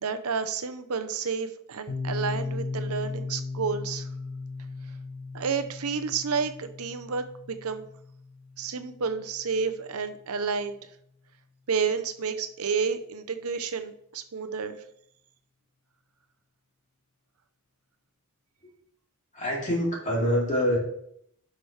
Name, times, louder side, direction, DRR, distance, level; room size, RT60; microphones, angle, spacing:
voice 1, 0.0-4.1 5.3-7.9 8.6-10.8 11.7-14.8, right 5 dB, 80° right, 9 dB, 0.7 m, -30 dB
Piano, 1.9-9.3, left 3 dB, 75° left, 1.4 m, -37 dB
voice 2, 19.3-20.8, equal, 35° left, -3 dB, 2.5 m, -25 dB
11.0 x 5.9 x 3.3 m, 0.71 s
head